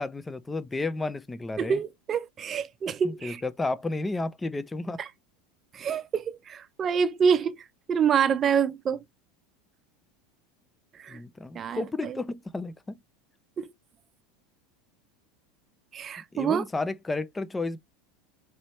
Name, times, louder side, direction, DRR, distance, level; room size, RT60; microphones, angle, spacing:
voice 1, 0.0-1.8 3.0-5.0 11.1-13.0 16.3-17.8, left 3 dB, 15° left, 0.5 m, -32 dB
voice 2, 1.6-3.4 5.0-5.1 5.7-7.5 7.9-9.0 11.0-11.2 11.5-12.2 13.6-13.7 15.9-16.6, right 7 dB, 30° right, 0.6 m, -26 dB
4.4 x 3.1 x 3.1 m
supercardioid pair, 110°, 0 cm